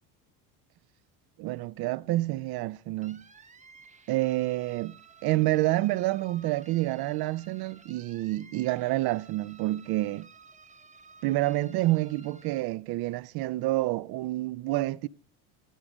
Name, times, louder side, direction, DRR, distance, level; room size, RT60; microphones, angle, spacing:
voice 1, 1.4-3.2 4.1-5.0 5.2-10.3 11.2-15.1, right 17 dB, 50° right, 0.6 m, -28 dB
sound 1, 3.0-12.6, right 5 dB, 15° right, 0.7 m, -55 dB
16.5 x 6.1 x 5.1 m
hypercardioid pair, 85°, 47 cm